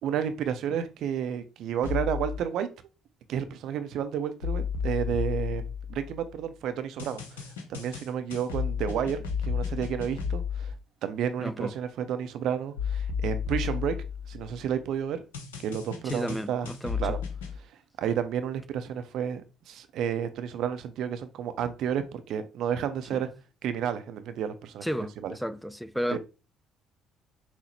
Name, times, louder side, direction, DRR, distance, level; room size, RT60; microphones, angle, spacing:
voice 1, 0.0-2.7 3.3-10.7 11.0-15.2 15.6-16.7 17.0-17.2 18.0-23.3 23.6-24.9 25.2-25.3 26.1-26.2, right 8 dB, 60° right, 0.4 m, -31 dB
sound 1, 1.8-2.4 4.4-6.3 7.0-10.7 12.8-14.6 15.3-17.6, left 7 dB, 80° left, 0.6 m, -32 dB
voice 2, 11.4-11.7 16.0-17.2 23.1-23.2 24.8-26.2, equal, ahead, 0.4 m, -33 dB
5.6 x 2.0 x 3.0 m
figure-of-eight pair, 50°, 0 cm